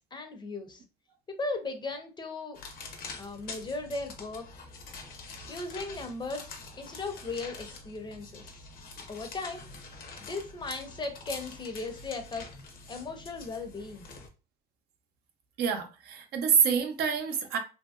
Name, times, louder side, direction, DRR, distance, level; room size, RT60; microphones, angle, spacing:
voice 1, 0.1-0.8 1.3-2.6 3.2-4.5 5.4-8.6 9.1-9.6 10.2-12.4 12.9-14.1, left 3 dB, 25° left, 0.6 m, -37 dB
sound 1, 2.5-14.3, left 3 dB, 60° left, 0.8 m, -45 dB
voice 2, 15.6-17.6, right 6 dB, 70° right, 0.6 m, -26 dB
2.8 x 2.8 x 2.3 m
cardioid pair, 110°, 17 cm